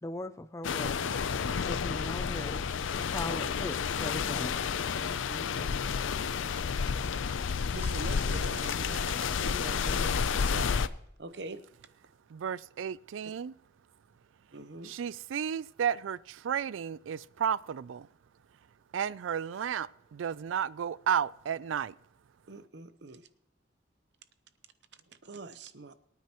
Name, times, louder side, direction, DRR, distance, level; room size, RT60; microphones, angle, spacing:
voice 1, 0.0-1.0 1.6-2.6 3.1-4.6, left 1 dB, 15° left, 0.4 m, -39 dB
sound 1, 0.6-10.9, left 6 dB, 85° left, 0.5 m, -31 dB
voice 2, 5.0-5.8 6.8-6.9 7.7-10.7 11.2-11.6 14.5-14.9 22.5-23.3 25.1-25.9, right 2 dB, 60° right, 0.8 m, -43 dB
voice 3, 12.3-13.5 14.8-18.1 18.9-21.9, right 8 dB, 85° right, 0.4 m, -33 dB
23.0 x 9.3 x 3.0 m
head